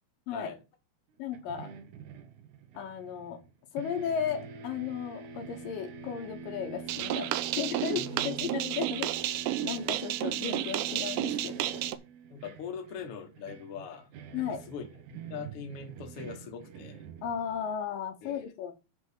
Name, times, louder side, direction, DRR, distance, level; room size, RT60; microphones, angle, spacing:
voice 1, 0.3-0.6 8.0-8.5 12.3-14.1 14.4-17.0 18.2-18.5, left 6 dB, 55° left, 1.7 m, -42 dB
voice 2, 1.2-1.7 2.7-3.4 3.7-9.1 9.6-11.9 14.3-14.6 17.2-18.7, left 8 dB, 70° left, 2.7 m, -35 dB
sound 1, 1.3-3.5 3.8-17.7, right 6 dB, 65° right, 2.2 m, -45 dB
sound 2, 6.9-12.0, right 13 dB, 85° right, 1.9 m, -32 dB
8.0 x 4.0 x 6.6 m
omnidirectional pair, 4.3 m